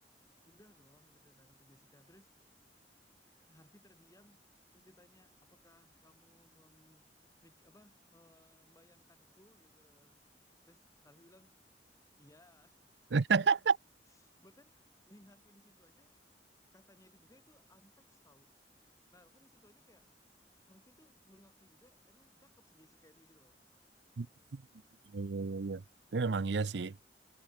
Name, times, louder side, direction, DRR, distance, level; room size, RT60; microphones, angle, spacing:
voice 1, 0.4-2.4 3.4-4.4 4.7-7.1 7.4-10.2 10.7-11.8 12.2-13.1 14.1-16.1 16.7-18.5 19.1-20.0 20.7-23.6, left 1 dB, 20° left, 5.7 m, -65 dB
voice 2, 13.1-13.8 24.2-24.3 24.5-24.6 25.1-25.8 26.1-26.9, right 5 dB, 75° right, 0.6 m, -30 dB
head